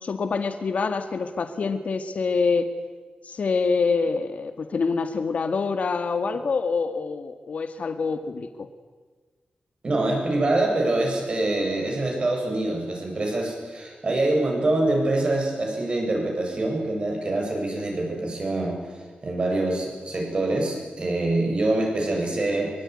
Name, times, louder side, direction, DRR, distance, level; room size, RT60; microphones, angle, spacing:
voice 1, 0.0-2.7 3.2-8.7, left 4 dB, 60° left, 7 dB, 1.9 m, -26 dB
voice 2, 9.8-18.8 19.2-22.7, right 2 dB, 40° right, 1 dB, 7.9 m, -25 dB
24.0 x 24.0 x 10.0 m, 1.4 s
wide cardioid pair, 145°, 3 cm